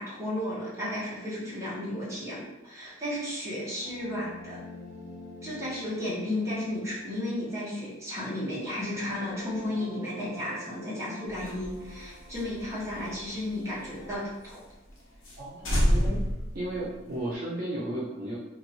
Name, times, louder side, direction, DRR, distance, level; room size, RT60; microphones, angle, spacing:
voice 1, 0.0-4.6 5.4-14.6, left 1 dB, 15° right, -8 dB, 1.1 m, -33 dB
sound 1, 3.7-14.2, left 1 dB, 35° left, 0.9 m, -48 dB
sound 2, 11.3-14.1 14.5-14.6 14.9-15.0 15.2-15.4 15.6-17.3, equal, 70° left, 0.8 m, -29 dB
voice 2, 15.4-16.2 16.5-18.4, right 1 dB, 45° right, -7 dB, 0.7 m, -34 dB
2.9 x 2.6 x 2.8 m, 0.94 s
head